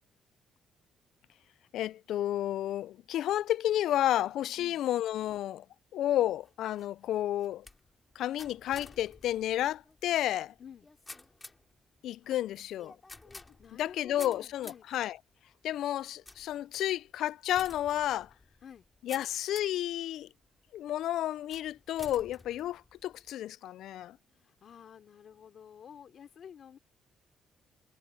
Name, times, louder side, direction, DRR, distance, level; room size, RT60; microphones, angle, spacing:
voice 1, 1.7-5.6 5.9-7.7 8.2-10.5 12.0-12.9 13.8-15.2 15.6-18.3 19.0-20.3 20.7-24.2, left 12 dB, 80° left, 0.3 m, -31 dB
sound 1, 6.2-19.9 20.4-20.9 21.5-23.3, left 3 dB, 25° left, 3.0 m, -53 dB
voice 2, 13.6-14.9 18.6-18.8 24.4-26.8, left 8 dB, 60° left, 4.4 m, -50 dB
cardioid pair, 80°, 0 cm